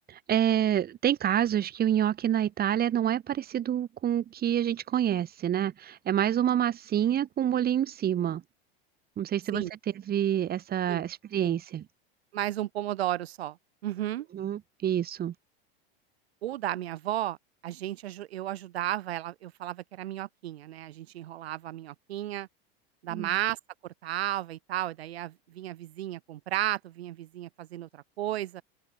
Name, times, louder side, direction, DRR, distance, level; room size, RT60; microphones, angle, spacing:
voice 1, 0.1-8.4 9.2-9.6 10.1-11.8 14.3-15.3 23.1-23.3, right 10 dB, 30° right, 2.2 m, -27 dB
voice 2, 12.3-13.6 13.8-14.3 16.4-17.4 17.6-22.5 23.0-28.6, right 13 dB, 90° right, 2.2 m, -33 dB
open air
supercardioid pair, 115°, 30 cm